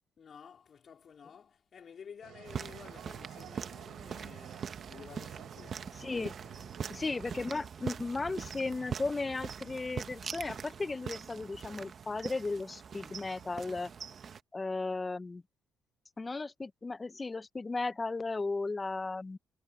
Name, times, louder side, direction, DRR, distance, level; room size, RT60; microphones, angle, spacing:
voice 1, 0.2-7.0, left 7 dB, 50° left, 3.8 m, -53 dB
sound 1, 2.2-7.4, right 13 dB, 85° right, 3.7 m, -52 dB
sound 2, 2.5-14.4, right 7 dB, 50° right, 1.2 m, -43 dB
voice 2, 6.0-6.3 6.9-13.9 14.5-15.4 16.2-19.4, left 3 dB, 25° left, 0.6 m, -35 dB
cardioid pair, 90°, 0 cm